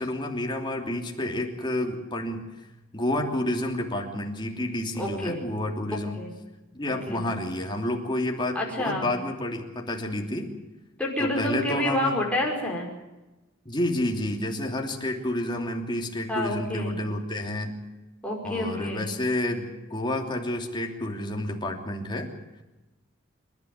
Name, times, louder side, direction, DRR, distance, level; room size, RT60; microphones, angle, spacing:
voice 1, 0.0-2.5 2.9-6.2 6.7-10.5 11.2-12.2 13.6-17.8 18.4-22.3, left 1 dB, 25° left, 2 dB, 3.0 m, -30 dB
voice 2, 5.0-5.4 6.1-6.3 7.1-7.2 8.5-9.1 11.0-12.9 16.3-17.0 18.2-19.0, left 1 dB, 5° left, -2 dB, 5.5 m, -28 dB
27.5 x 12.0 x 9.5 m, 1.1 s
head